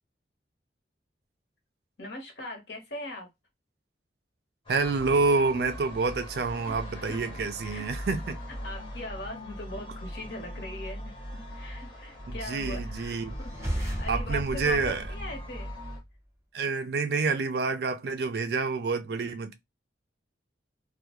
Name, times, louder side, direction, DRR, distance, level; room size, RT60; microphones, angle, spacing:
voice 1, 2.0-3.3 6.6-7.2 7.6-7.9 8.5-15.7, left 1 dB, 70° left, 1.0 m, -41 dB
sound 1, 4.7-16.0, equal, 30° left, 0.7 m, -40 dB
voice 2, 4.7-8.4 12.3-13.4 14.1-15.1 16.5-19.5, right 4 dB, 60° right, 0.4 m, -28 dB
sound 2, 13.3-16.1, equal, 15° right, 0.7 m, -34 dB
2.3 x 2.1 x 2.9 m
head